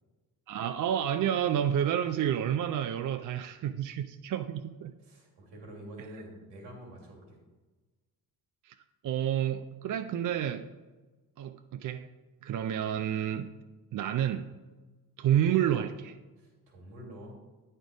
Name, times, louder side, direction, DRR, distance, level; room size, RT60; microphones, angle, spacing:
voice 1, 0.5-4.9 8.7-8.8 9.0-10.7 11.4-12.1 12.4-13.5 13.9-14.5 15.2-16.1, right 10 dB, 45° right, 9 dB, 0.5 m, -29 dB
voice 2, 5.0-7.4 16.4-17.3, right 1 dB, 70° right, 0 dB, 2.5 m, -47 dB
9.0 x 4.4 x 4.9 m, 1.2 s
hypercardioid pair, 50°, 47 cm